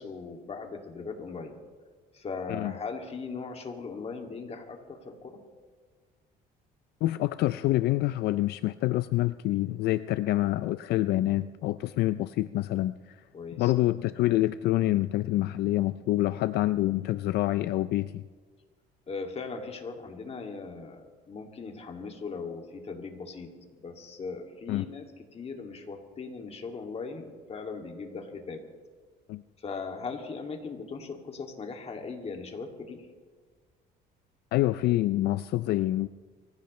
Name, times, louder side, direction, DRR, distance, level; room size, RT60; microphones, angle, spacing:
voice 1, 0.0-1.5 2.1-5.4 13.3-13.7 19.1-25.0 25.3-28.7 29.6-33.1, left 4 dB, 35° left, 3 dB, 2.4 m, -39 dB
voice 2, 7.0-13.2 13.6-18.2 24.7-24.8 29.3-29.4 34.5-36.1, left 16 dB, 75° left, 13 dB, 0.4 m, -27 dB
24.5 x 16.0 x 3.2 m, 1.5 s
cardioid pair, 110°, 17 cm